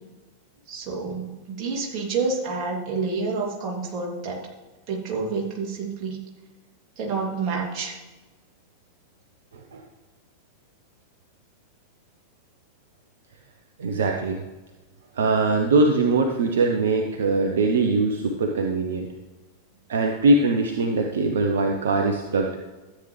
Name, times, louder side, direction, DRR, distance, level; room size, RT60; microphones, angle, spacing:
voice 1, 0.7-4.5 4.9-6.2 7.0-7.9, right 4 dB, 35° right, -2 dB, 2.6 m, -28 dB
voice 2, 13.8-14.4 15.1-19.1 19.9-22.6, right 3 dB, 65° right, 3 dB, 0.8 m, -22 dB
13.0 x 8.6 x 3.3 m, 1.2 s
figure-of-eight pair, 90°, 0 cm